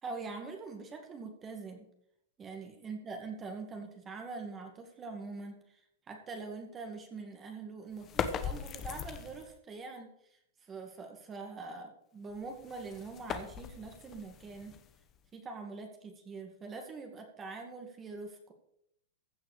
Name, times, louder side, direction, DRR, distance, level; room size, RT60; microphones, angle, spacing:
voice 1, 0.0-1.9 2.4-5.8 6.1-14.8 15.3-18.5, right 4 dB, 20° right, 4 dB, 2.2 m, -44 dB
sound 1, 8.0-9.6 12.3-15.3, left 8 dB, 30° left, 1.1 m, -40 dB
15.5 x 6.1 x 6.8 m, 0.74 s
hypercardioid pair, 135°, 0 cm